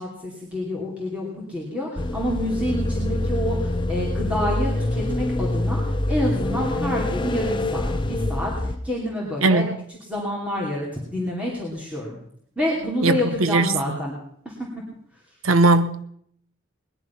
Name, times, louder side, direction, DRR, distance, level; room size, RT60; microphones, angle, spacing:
voice 1, 0.0-5.8 6.1-12.2 12.6-14.2 14.4-14.6, left 1 dB, 5° right, 2.7 m, -28 dB
sound 1, 2.0-8.8, left 1 dB, 25° left, 0.8 m, -25 dB
voice 2, 9.4-9.8 13.0-13.7 15.4-16.0, right 2 dB, 90° right, 1.0 m, -19 dB
19.5 x 11.0 x 5.8 m
head